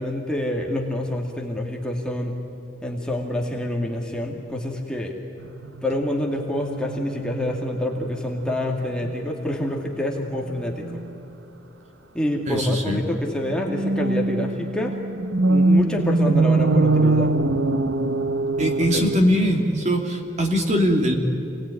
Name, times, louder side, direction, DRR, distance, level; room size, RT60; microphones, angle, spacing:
voice 1, 0.0-2.4 2.8-5.1 5.8-11.0 12.1-14.9 15.5-17.3 18.8-19.0, left 1 dB, 5° left, -1 dB, 2.3 m, -27 dB
sound 1, 5.4-8.2 8.5-8.7 9.0-9.4 10.7-11.1 13.5-19.2, right 2 dB, 75° right, 1.1 m, -23 dB
voice 2, 12.5-13.1 18.6-21.2, equal, 35° right, 2 dB, 2.8 m, -21 dB
28.5 x 19.5 x 9.8 m, 2.9 s
head